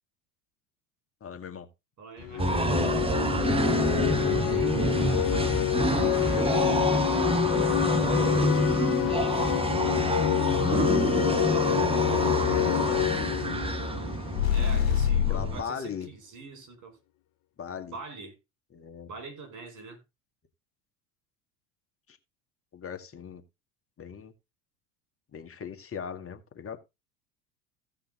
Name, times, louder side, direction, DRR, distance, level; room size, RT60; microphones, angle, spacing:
voice 1, 1.2-1.7 12.6-13.4 14.1-14.5 15.3-16.1 17.6-18.0 18.7-19.1 22.1-22.2 22.7-23.4 24.0-24.3 25.3-26.8, left 7 dB, 30° left, 2.1 m, -39 dB
voice 2, 2.0-2.8 3.4-6.7 7.4-10.6 10.9-11.2 14.5-17.0 17.9-18.4 19.1-20.0, right 4 dB, 40° right, 5.0 m, -45 dB
sound 1, 2.2-14.9, left 13 dB, 50° left, 1.1 m, -27 dB
sound 2, 2.4-15.6, right 2 dB, 10° right, 1.4 m, -28 dB
sound 3, 14.3-15.6, left 10 dB, 65° left, 2.3 m, -25 dB
16.0 x 5.8 x 3.8 m
hypercardioid pair, 80°, 45 cm